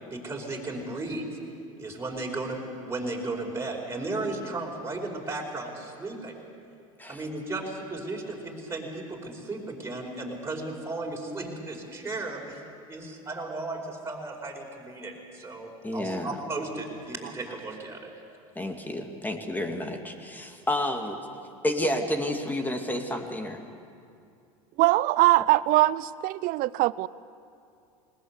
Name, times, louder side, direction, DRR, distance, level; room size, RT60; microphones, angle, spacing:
voice 1, 0.1-1.2 1.8-6.3 7.1-12.6 12.9-18.1, right 2 dB, 15° right, -1 dB, 4.9 m, -35 dB
voice 2, 15.8-16.4 18.6-21.2 21.6-23.6, left 1 dB, 10° left, 5 dB, 2.2 m, -30 dB
voice 3, 24.8-27.1, right 17 dB, 50° right, 20 dB, 0.6 m, -22 dB
20.0 x 19.5 x 8.1 m, 2.5 s
hypercardioid pair, 95°, 18 cm